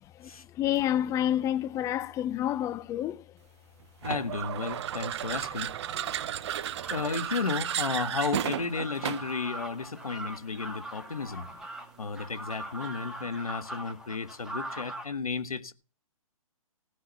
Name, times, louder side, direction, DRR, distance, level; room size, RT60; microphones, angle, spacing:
voice 1, 0.2-3.3 5.9-6.1, left 11 dB, 15° left, 0.6 m, -29 dB
voice 2, 4.0-5.7 6.9-11.5 12.0-15.7, left 4 dB, 90° left, 1.6 m, -33 dB
sound 1, 4.0-9.4, right 11 dB, 50° right, 0.7 m, -33 dB
sound 2, 6.8-15.1, right 1 dB, 5° right, 2.3 m, -42 dB
16.5 x 5.9 x 8.2 m
hypercardioid pair, 135°, 18 cm